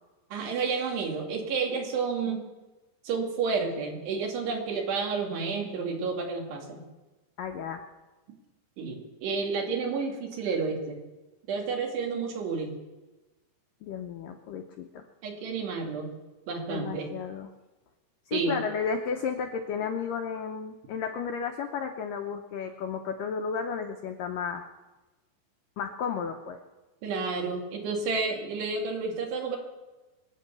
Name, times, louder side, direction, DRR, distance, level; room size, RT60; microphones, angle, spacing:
voice 1, 0.3-2.5 3.0-6.8 8.8-11.0 11.5-12.8 15.2-16.1 16.5-17.1 18.3-18.6 27.0-29.6, right 4 dB, 70° right, 1 dB, 4.2 m, -30 dB
voice 2, 7.4-7.8 13.8-15.1 16.7-17.5 18.3-24.7 25.8-26.6, left 6 dB, 80° left, 5 dB, 1.9 m, -33 dB
24.5 x 8.4 x 6.9 m, 1.2 s
omnidirectional pair, 5.0 m